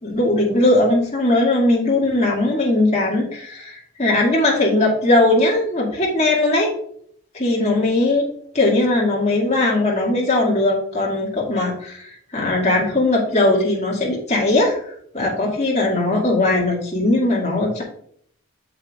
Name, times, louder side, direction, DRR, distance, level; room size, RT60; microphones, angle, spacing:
voice 1, 0.0-6.7 7.3-8.2 8.5-17.8, left 2 dB, 30° left, -3 dB, 2.0 m, -19 dB
8.1 x 7.0 x 2.4 m, 0.63 s
head